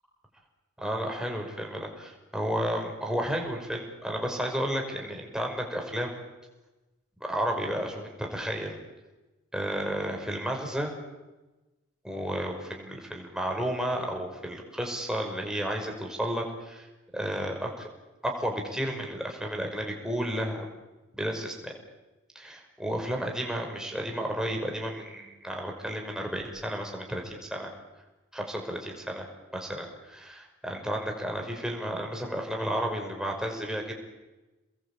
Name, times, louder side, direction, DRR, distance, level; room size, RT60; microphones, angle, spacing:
voice 1, 0.8-6.2 7.2-8.8 9.5-10.9 12.0-16.9 17.1-17.9 18.2-20.6 21.2-21.7 22.3-27.7 28.3-29.3 29.5-33.9, equal, 5° right, 1 dB, 5.6 m, -32 dB
29.0 x 21.5 x 8.7 m, 1.1 s
head